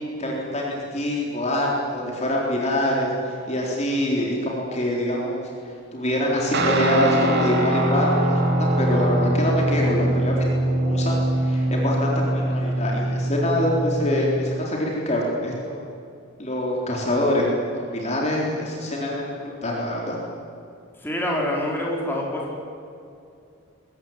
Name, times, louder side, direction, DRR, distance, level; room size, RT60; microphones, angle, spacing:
voice 1, 0.0-5.4 5.9-15.8 16.4-20.2, left 1 dB, 30° left, -2 dB, 3.9 m, -25 dB
Guitar, 6.5-14.7, right 1 dB, 55° right, 2.7 m, -23 dB
voice 2, 21.0-22.6, left 1 dB, 10° left, -2 dB, 4.5 m, -26 dB
22.5 x 17.0 x 9.2 m, 2.5 s
head